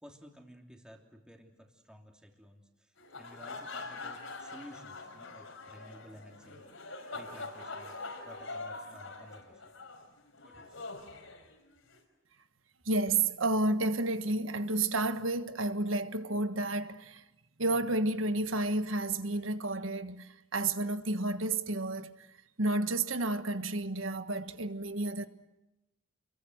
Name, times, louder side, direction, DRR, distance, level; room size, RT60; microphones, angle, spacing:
voice 1, 0.0-9.6 10.4-10.8, equal, 5° right, 3.0 m, -54 dB
sound 1, 3.0-12.0, left 3 dB, 85° left, 5.4 m, -44 dB
voice 2, 12.8-17.2 17.6-22.3 22.6-25.3, right 2 dB, 75° right, 1.5 m, -31 dB
29.5 x 22.5 x 8.0 m
head